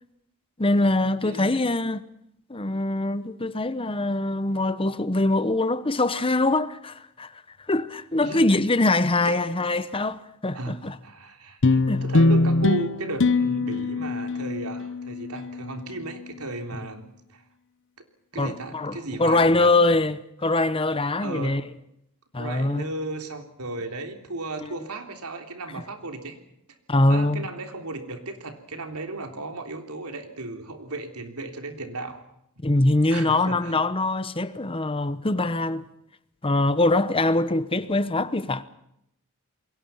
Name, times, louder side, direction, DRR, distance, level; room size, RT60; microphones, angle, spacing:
voice 1, 0.6-2.1 2.5-7.3 7.7-11.0 11.9-12.0 16.7-16.9 18.4-21.6 22.3-22.9 24.6-24.7 26.9-27.5 32.6-35.8 36.4-38.6, left 2 dB, 25° left, 1.0 m, -23 dB
voice 2, 1.2-1.5 8.2-8.4 9.3-9.4 10.5-17.4 18.3-19.7 21.2-21.6 22.4-26.4 27.1-32.2 33.1-33.7, right 2 dB, 90° right, 3.5 m, -35 dB
sound 1, 11.6-16.3, left 3 dB, 60° left, 0.9 m, -23 dB
28.5 x 22.5 x 5.8 m
head